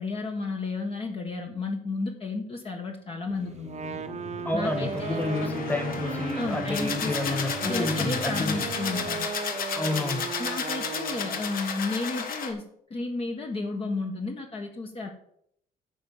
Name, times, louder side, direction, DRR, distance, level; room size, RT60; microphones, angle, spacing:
voice 1, 0.0-4.0 4.5-5.5 6.3-9.3 10.4-12.6 12.9-15.1, left 3 dB, 35° left, 2 dB, 1.5 m, -33 dB
sound 1, 3.2-9.2, left 4 dB, 85° left, 2.6 m, -42 dB
Wind instrument woodwind instrument, 3.6-11.6, right 6 dB, 40° right, 1.0 m, -36 dB
voice 2, 4.4-8.6 9.7-10.3, left 2 dB, 10° left, 5 dB, 1.8 m, -30 dB
sound 2, 4.6-12.5, left 6 dB, 60° left, 1.6 m, -33 dB
9.3 x 5.3 x 7.4 m, 0.69 s
cardioid pair, 110°, 17 cm